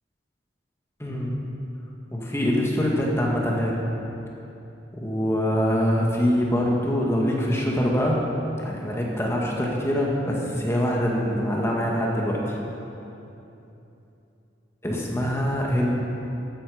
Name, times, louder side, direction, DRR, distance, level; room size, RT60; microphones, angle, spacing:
voice 1, 1.0-1.3 2.1-3.8 4.9-8.2 8.6-12.6 14.8-15.9, equal, 15° left, -2 dB, 1.9 m, -24 dB
14.5 x 11.5 x 5.2 m, 2.9 s
head